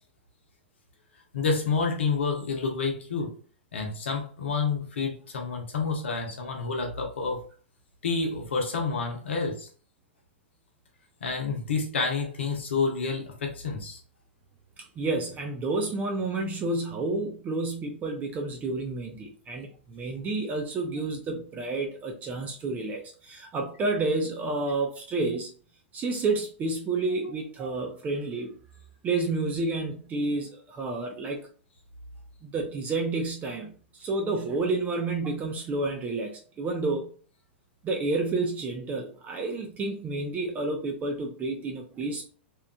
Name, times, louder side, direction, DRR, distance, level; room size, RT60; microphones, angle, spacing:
voice 1, 1.3-3.4 3.7-7.4 8.0-9.7 11.2-14.0, left 4 dB, 75° left, 0.8 m, -29 dB
voice 2, 15.0-25.5 25.9-28.5 29.0-31.5 32.4-33.7 34.0-37.1 37.8-42.2, right 3 dB, 25° right, 0.5 m, -30 dB
2.9 x 2.3 x 2.3 m
hypercardioid pair, 105°, 6 cm